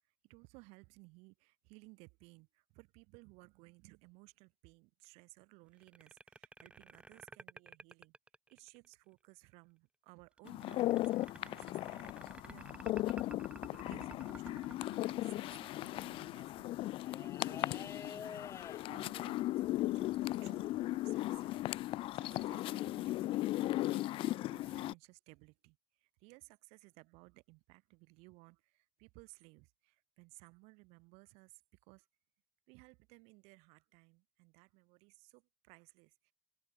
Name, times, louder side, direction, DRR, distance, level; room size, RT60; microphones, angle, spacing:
voice 1, 0.2-8.1 8.5-21.6 21.9-32.1 32.7-36.3, right 28 dB, 90° right, 5.4 m, -60 dB
sound 1, 5.8-8.9 10.4-15.9, right 3 dB, 10° right, 1.6 m, -52 dB
sound 2, 10.5-24.9, left 16 dB, 60° left, 1.3 m, -37 dB
sound 3, 12.1-14.6 15.3-15.6 16.0-22.4 23.5-23.6, left 7 dB, 25° left, 0.9 m, -52 dB
cardioid pair, 145°, 10 cm